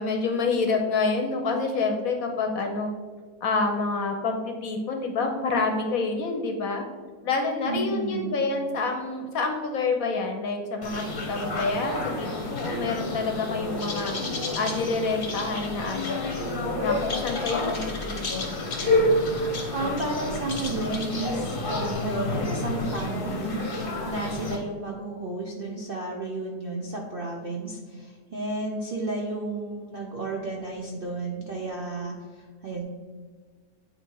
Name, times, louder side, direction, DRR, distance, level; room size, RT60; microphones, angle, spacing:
voice 1, 0.0-2.9 3.4-6.8 7.2-14.1 14.5-16.2 16.8-17.8 18.0-18.6, left 3 dB, 60° left, 3 dB, 1.1 m, -28 dB
voice 2, 7.7-8.4 19.7-32.8, right 2 dB, 55° right, -1 dB, 0.6 m, -32 dB
sound 1, 10.8-24.6, left 2 dB, 35° left, 1.0 m, -29 dB
8.8 x 3.2 x 4.6 m, 1.5 s
omnidirectional pair, 1.9 m